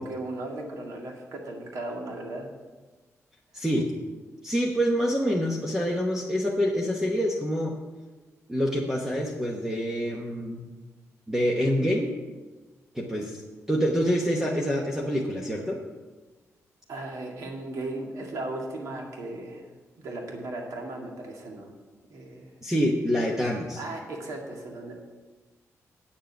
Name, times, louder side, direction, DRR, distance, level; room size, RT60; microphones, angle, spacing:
voice 1, 0.0-2.5 16.9-19.6 20.0-21.7 22.1-22.5 23.8-24.9, right 2 dB, 80° right, 1 dB, 2.0 m, -36 dB
voice 2, 3.5-3.9 4.4-7.7 8.5-10.7 11.3-12.1 12.9-13.4 13.7-15.8 22.6-23.8, equal, 10° right, -1 dB, 0.9 m, -26 dB
9.0 x 7.4 x 7.0 m, 1.2 s
wide cardioid pair, 165°, 6 cm